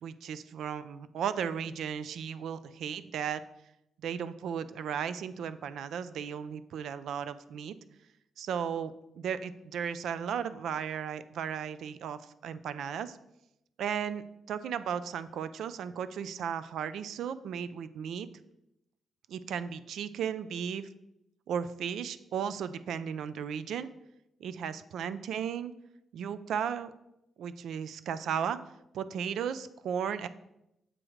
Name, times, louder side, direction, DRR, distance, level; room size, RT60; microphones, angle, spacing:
voice 1, 0.0-3.4 4.0-7.8 8.4-13.2 13.8-18.3 19.3-20.9 21.5-23.9 24.4-25.7 26.1-26.9 27.4-28.6 28.9-30.3, right 8 dB, 75° right, 14 dB, 0.3 m, -35 dB
7.4 x 3.1 x 4.9 m, 0.85 s
wide cardioid pair, 170°, 0 cm